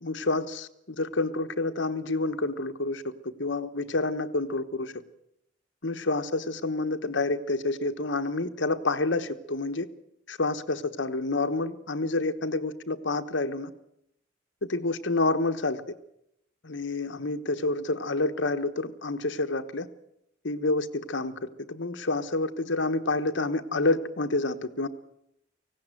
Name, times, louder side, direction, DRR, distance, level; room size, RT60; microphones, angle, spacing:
voice 1, 0.0-4.9 5.8-9.9 10.3-13.7 14.7-15.8 16.6-19.9 20.4-24.9, left 2 dB, 70° left, 8 dB, 1.2 m, -28 dB
18.5 x 16.5 x 9.1 m, 0.79 s
head